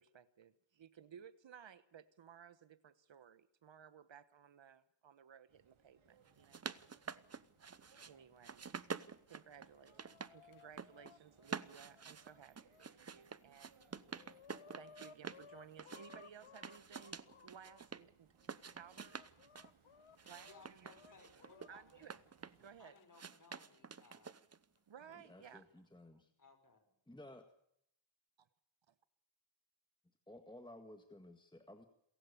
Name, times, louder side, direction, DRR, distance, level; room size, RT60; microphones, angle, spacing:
voice 1, 0.0-6.6 8.0-8.7 9.3-13.9 14.7-18.3 18.8-19.2 20.3-20.9 21.7-22.2 22.6-23.0 24.9-25.7 28.4-28.5 28.9-29.0, right 8 dB, 65° right, 1.2 m, -58 dB
sound 1, 5.5-22.8, right 6 dB, 80° right, 3.4 m, -71 dB
sound 2, 6.3-8.1 8.4-10.3 10.6-11.1 11.4-15.4 15.8-18.0 18.4-19.7 20.2-22.7 23.1-24.6, right 5 dB, 30° right, 0.9 m, -48 dB
Chicken rooster, 9.4-12.9 13.4-13.5 13.8-17.8 18.4-21.7 23.0-23.1 24.1-24.2 25.1-25.5, left 7 dB, 85° left, 1.4 m, -62 dB
voice 2, 20.4-22.2 22.8-24.4 25.1-25.5 26.4-26.9, left 4 dB, 40° left, 6.0 m, -63 dB
voice 3, 25.3-26.3 27.1-27.5 30.3-31.9, left 1 dB, 10° left, 1.8 m, -55 dB
27.5 x 15.5 x 6.9 m
wide cardioid pair, 105°, 48 cm